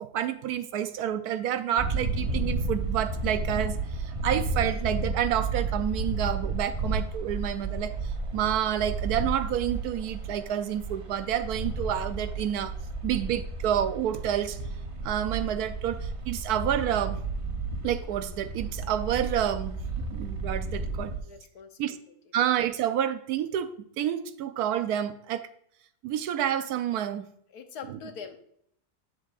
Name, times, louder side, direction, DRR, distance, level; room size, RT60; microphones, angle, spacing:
voice 1, 0.0-7.9 8.3-12.7 13.0-14.6 15.0-17.2 17.8-19.8 20.1-21.1 21.8-22.0 22.3-25.4 26.0-27.3, right 10 dB, 80° right, 11 dB, 1.1 m, -29 dB
sound 1, 1.8-21.2, right 3 dB, 30° right, 0.7 m, -32 dB
voice 2, 21.2-21.8 27.5-28.4, left 6 dB, 80° left, 6 dB, 1.5 m, -43 dB
8.7 x 7.3 x 2.5 m, 0.69 s
omnidirectional pair, 1.7 m